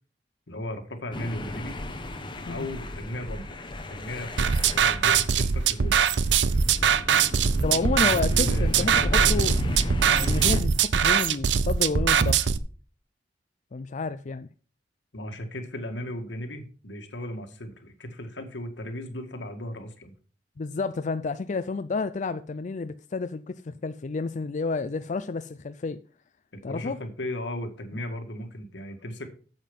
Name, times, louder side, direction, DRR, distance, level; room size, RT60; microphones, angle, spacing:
voice 1, 0.5-1.8 2.5-3.6 3.9-6.0 8.3-9.4 15.1-20.1 26.7-29.3, left 1 dB, 80° left, 1.9 m, -36 dB
sound 1, 1.1-10.6, left 1 dB, 25° left, 1.3 m, -32 dB
sound 2, 4.4-12.6, right 7 dB, 80° right, 0.6 m, -22 dB
voice 2, 7.6-9.5 10.0-12.4 13.7-14.5 20.6-26.0 26.6-27.0, left 4 dB, 45° left, 0.4 m, -30 dB
9.0 x 7.5 x 5.3 m
head